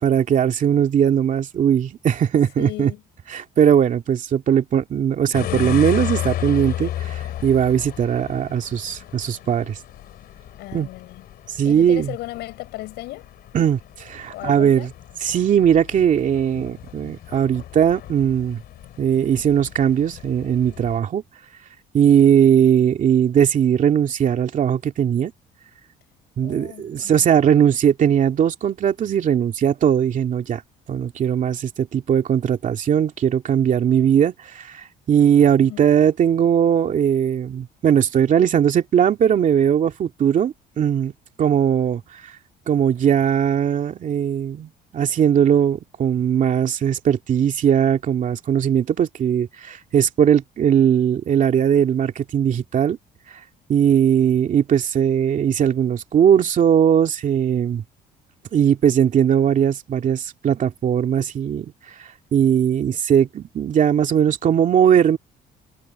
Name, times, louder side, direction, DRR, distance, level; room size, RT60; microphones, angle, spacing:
voice 1, 0.0-2.9 3.3-9.8 10.7-10.9 11.5-12.1 13.5-14.9 15.2-18.6 19.0-21.2 21.9-25.3 26.4-30.6 30.9-41.1 41.4-42.3 42.7-53.0 53.7-57.8 58.5-65.2, right 9 dB, 50° right, 2.4 m, -19 dB
voice 2, 2.6-3.0 10.6-11.3 11.6-13.3 14.3-14.9 26.4-27.3 35.6-35.9, left 18 dB, 85° left, 6.1 m, -35 dB
sound 1, 5.3-21.0, left 12 dB, 70° left, 3.0 m, -33 dB
cardioid pair, 110°, 17 cm